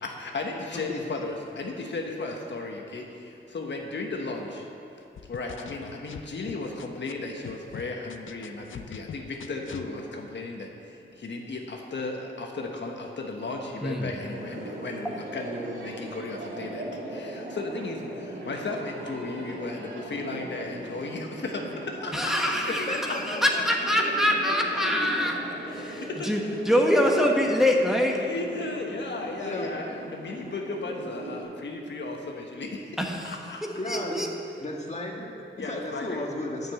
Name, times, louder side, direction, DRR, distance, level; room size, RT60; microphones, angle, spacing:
voice 1, 0.0-4.7 5.3-23.0 25.7-26.9 27.2-27.4 28.1-33.0 33.2-33.6 35.6-36.2, left 3 dB, 65° left, 1 dB, 1.1 m, -35 dB
sound 1, 5.2-7.1 7.4-9.9, left 8 dB, 85° left, 0.5 m, -42 dB
voice 2, 13.8-14.1 22.1-25.4 25.7-26.4 26.6-28.2 33.0-33.3 33.8-34.3, equal, ahead, 0 dB, 1.1 m, -24 dB
sound 2, 14.2-31.4, right 1 dB, 80° right, 2.4 m, -39 dB
voice 3, 22.9-23.6 29.4-29.7 33.7-34.3 34.6-36.7, left 1 dB, 35° left, 0 dB, 1.6 m, -34 dB
9.4 x 6.7 x 8.1 m, 2.7 s
wide cardioid pair, 95°, 20 cm